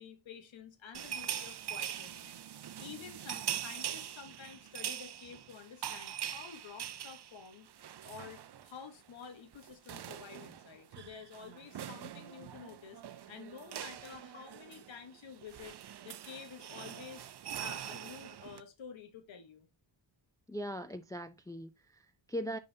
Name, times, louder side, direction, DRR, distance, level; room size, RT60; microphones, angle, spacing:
voice 1, 0.0-7.7 8.0-13.0 13.3-15.8 16.0-17.3 17.6-19.7, left 6 dB, 85° left, 1.2 m, -50 dB
sound 1, 0.9-8.8 9.1-9.3 9.5-18.6, right 10 dB, 60° right, 0.6 m, -43 dB
voice 2, 20.5-22.6, equal, 10° left, 0.4 m, -40 dB
10.5 x 3.9 x 2.7 m
wide cardioid pair, 135°, 45 cm